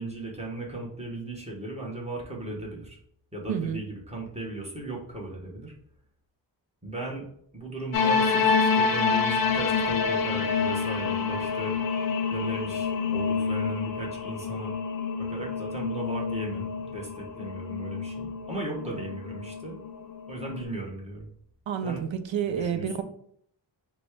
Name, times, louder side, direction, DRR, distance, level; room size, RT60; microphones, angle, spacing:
voice 1, 0.0-3.0 3.3-5.7 6.8-7.3 7.5-11.8 12.3-14.7 15.2-19.8 20.3-21.3 21.8-22.0 22.4-22.9, right 2 dB, 15° right, -3 dB, 1.3 m, -37 dB
voice 2, 3.5-3.8 18.9-19.0 21.7-23.0, right 7 dB, 85° right, 9 dB, 0.6 m, -30 dB
sound 1, 7.9-20.6, left 5 dB, 50° left, 0.5 m, -28 dB
4.2 x 2.3 x 4.6 m, 0.65 s
wide cardioid pair, 120°, 45 cm